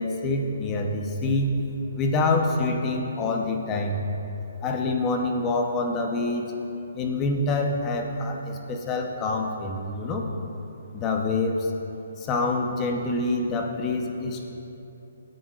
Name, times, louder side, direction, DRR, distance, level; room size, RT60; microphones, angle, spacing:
voice 1, 0.0-1.5 2.0-4.0 4.6-6.5 6.9-10.3 10.9-11.7 12.2-14.5, left 2 dB, 20° left, 2 dB, 0.9 m, -26 dB
18.5 x 9.1 x 2.5 m, 2.9 s
hypercardioid pair, 155°, 0 cm